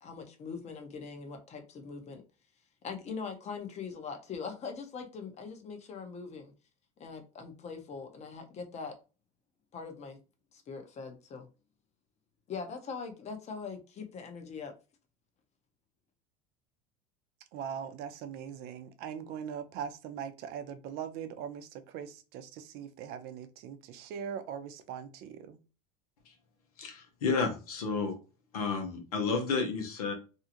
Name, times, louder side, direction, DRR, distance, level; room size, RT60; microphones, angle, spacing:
voice 1, 0.0-2.2 2.8-6.5 7.0-8.9 9.7-10.2 10.5-11.5 12.5-14.7, left 5 dB, 35° left, 0.9 m, -42 dB
voice 2, 17.5-25.6, right 8 dB, 60° right, 0.6 m, -41 dB
voice 3, 26.8-28.2 28.5-30.1, left 4 dB, 85° left, 0.9 m, -31 dB
2.7 x 2.3 x 2.8 m
hypercardioid pair, 90°, 19 cm